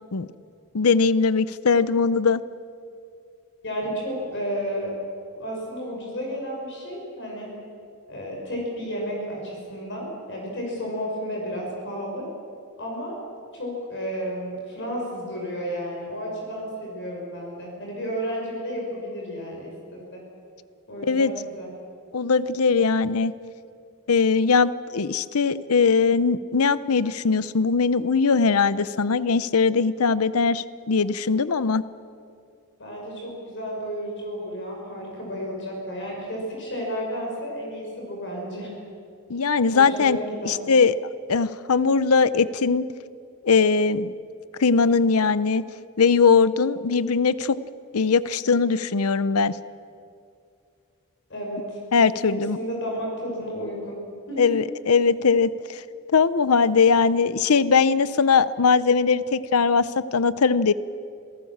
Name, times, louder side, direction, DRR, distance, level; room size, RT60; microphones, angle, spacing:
voice 1, 0.7-2.4 21.1-21.3 22.1-23.3 24.1-31.8 39.3-40.2 40.4-40.9 41.3-42.8 43.4-44.1 44.6-45.6 46.0-47.6 47.9-49.5 51.9-52.6 54.4-55.5 56.1-60.7, left 5 dB, 75° left, 16 dB, 0.7 m, -20 dB
voice 2, 3.6-4.9 5.3-7.5 8.1-12.2 12.8-13.2 13.5-20.2 20.9-21.7 32.8-38.7 39.7-40.6 51.3-51.8 52.2-54.0 54.3-54.4, equal, 55° left, -1 dB, 5.6 m, -32 dB
27.5 x 18.0 x 7.3 m, 2.4 s
head